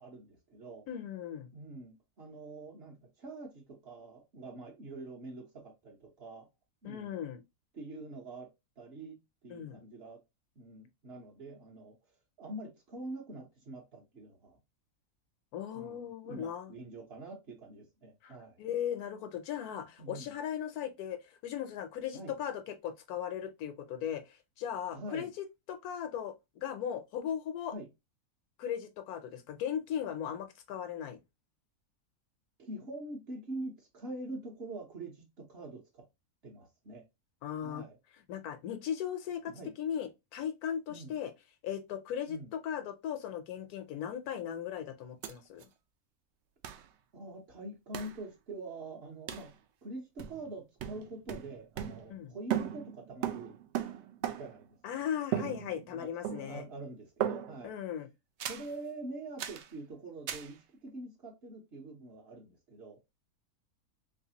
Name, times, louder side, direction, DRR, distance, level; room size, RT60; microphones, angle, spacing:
voice 1, 0.0-0.9 1.5-6.5 6.8-7.2 7.7-8.5 8.8-10.2 10.6-12.0 12.4-14.6 15.7-18.6 20.0-20.3 22.1-22.4 24.9-25.3 27.7-27.9 32.6-36.1 36.4-37.1 37.6-38.0 39.5-39.7 40.9-41.1 42.3-42.5 47.1-49.5 49.8-53.6 54.2-54.8 55.9-56.1 56.4-57.8 58.5-63.0, right 2 dB, 45° right, 1.2 m, -45 dB
voice 2, 0.9-1.5 6.8-7.4 9.5-9.8 15.5-16.7 18.2-26.3 26.6-27.7 28.6-31.2 37.4-37.8 38.3-41.3 41.6-45.7 52.1-52.3 54.8-56.6 57.6-58.1, left 9 dB, 85° left, 1.2 m, -38 dB
sound 1, 45.2-45.3 45.6-45.7 46.6-46.9 47.9-48.2 49.3-49.5 50.2-50.5 50.8-52.2 52.5-54.7 55.3-56.0 56.2-56.7 57.2-57.7 58.4-58.7 59.4-59.7 60.3-60.5, right 10 dB, 65° right, 0.7 m, -37 dB
3.2 x 3.2 x 2.8 m
omnidirectional pair, 1.6 m